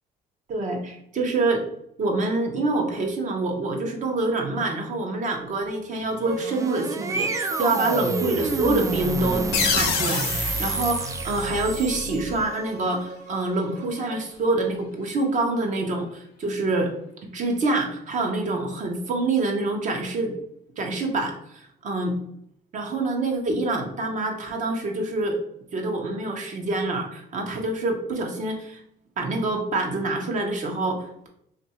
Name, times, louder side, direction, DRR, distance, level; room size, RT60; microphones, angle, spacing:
voice 1, 0.5-1.6 2.0-16.9 17.3-20.3 20.8-22.2 22.7-25.4 25.7-28.8 29.2-31.3, right 2 dB, 45° right, 2 dB, 0.8 m, -26 dB
sound 1, 6.1-12.5, right 3 dB, 20° right, 0.3 m, -29 dB
Bowed string instrument, 6.2-14.2, right 2 dB, 80° right, 0.9 m, -42 dB
sound 2, 9.5-12.1, left 6 dB, 90° left, 0.7 m, -28 dB
2.7 x 2.5 x 4.2 m, 0.73 s
cardioid pair, 110°, 17 cm